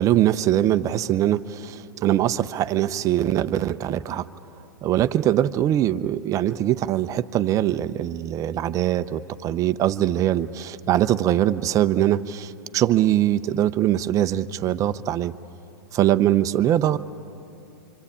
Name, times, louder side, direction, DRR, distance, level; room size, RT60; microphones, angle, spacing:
voice 1, 0.0-4.3 4.8-15.3 15.9-17.0, right 12 dB, 30° right, 12 dB, 0.7 m, -22 dB
26.0 x 26.0 x 8.6 m, 2.8 s
hypercardioid pair, 110°, 10 cm